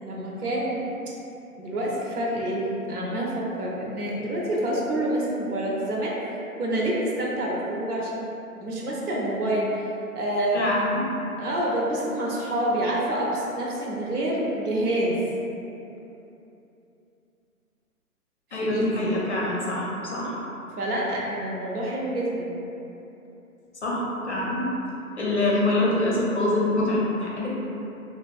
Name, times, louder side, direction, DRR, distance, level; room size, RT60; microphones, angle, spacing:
voice 1, 0.0-0.8 1.6-6.2 6.6-8.3 8.6-9.8 10.1-10.6 11.4-15.2 18.5-19.1 20.8-22.5, right 1 dB, 90° right, -4 dB, 0.8 m, -27 dB
voice 2, 10.5-11.0 18.5-20.4 23.8-24.7 25.2-27.5, left 1 dB, 50° left, -5 dB, 0.5 m, -25 dB
2.6 x 2.4 x 2.3 m, 2.9 s
hypercardioid pair, 180°, 44 cm